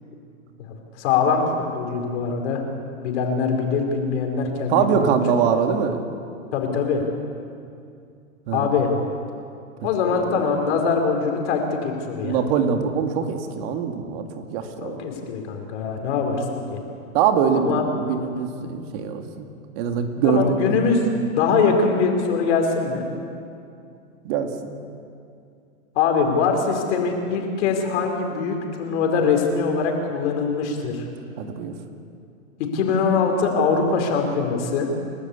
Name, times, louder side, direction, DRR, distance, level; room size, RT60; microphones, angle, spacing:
voice 1, 1.0-2.6 3.0-4.9 6.5-7.0 8.5-8.9 9.8-12.4 14.8-16.8 17.6-17.8 20.2-21.1 21.3-23.1 25.9-31.0 32.6-34.9, left 5 dB, 55° left, 3 dB, 4.7 m, -22 dB
voice 2, 4.7-6.0 8.5-8.7 10.1-10.5 12.2-15.0 17.1-19.5 19.8-20.8 24.2-24.8 31.4-31.7, right 6 dB, 45° right, 5 dB, 2.3 m, -23 dB
29.5 x 13.0 x 8.5 m, 2.4 s
hypercardioid pair, 140°, 42 cm